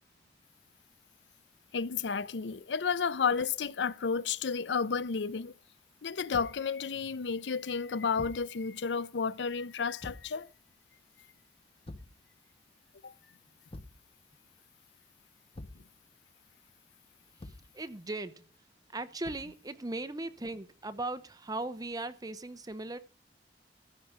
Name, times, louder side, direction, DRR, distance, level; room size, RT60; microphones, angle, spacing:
voice 1, 1.7-5.5 6.0-10.5 13.0-13.1, left 5 dB, 85° left, 0.6 m, -32 dB
Thump thud, 6.3-6.7 8.2-8.5 10.0-10.4 11.9-12.2 13.7-14.0 15.5-15.9 17.4-17.7 19.2-19.6, left 1 dB, 35° left, 0.8 m, -46 dB
voice 2, 17.4-18.5 18.9-23.0, right 2 dB, 20° right, 0.9 m, -38 dB
14.0 x 5.2 x 8.7 m
head